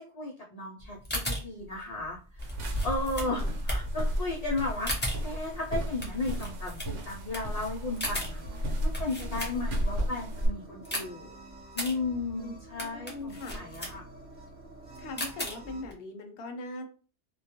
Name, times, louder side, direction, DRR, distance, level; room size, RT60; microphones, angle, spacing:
voice 1, 0.0-2.5 2.8-11.3 11.7-14.0, left 2 dB, 85° left, -1 dB, 0.3 m, -35 dB
sound 1, 0.8-9.9 10.3-15.9, equal, 15° left, 0.4 m, -37 dB
sound 2, 2.4-10.5, equal, 75° right, 0.9 m, -33 dB
voice 2, 3.2-3.5 12.4-12.5 12.8-13.5 15.0-16.9, left 2 dB, 60° left, 5 dB, 0.7 m, -40 dB
sound 3, 7.8-15.8, right 2 dB, 45° right, 0.8 m, -50 dB
2.3 x 2.1 x 2.8 m, 0.37 s
omnidirectional pair, 1.3 m